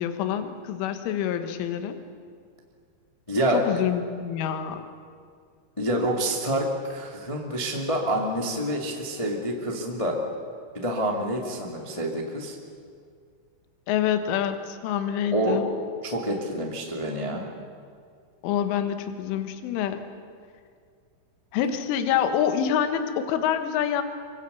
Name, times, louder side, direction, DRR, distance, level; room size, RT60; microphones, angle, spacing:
voice 1, 0.0-2.0 3.5-4.8 13.9-15.7 18.4-20.0 21.5-24.0, left 9 dB, 80° left, 8 dB, 3.8 m, -26 dB
voice 2, 3.3-3.6 5.8-10.1 10.7-12.5 15.3-15.6 16.0-17.4, right 1 dB, 35° left, 0 dB, 0.5 m, -27 dB
25.0 x 24.5 x 7.1 m, 2.2 s
omnidirectional pair, 5.7 m